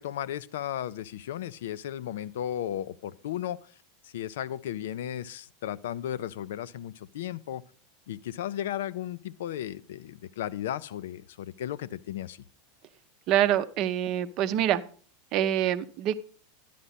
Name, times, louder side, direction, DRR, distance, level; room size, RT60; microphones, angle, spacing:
voice 1, 0.0-3.6 4.0-7.6 8.1-12.4, left 11 dB, 60° left, 19 dB, 0.5 m, -35 dB
voice 2, 13.3-14.8 15.3-16.2, right 11 dB, 45° right, 12 dB, 0.7 m, -25 dB
11.5 x 10.0 x 4.1 m, 0.41 s
figure-of-eight pair, 85°, 0 cm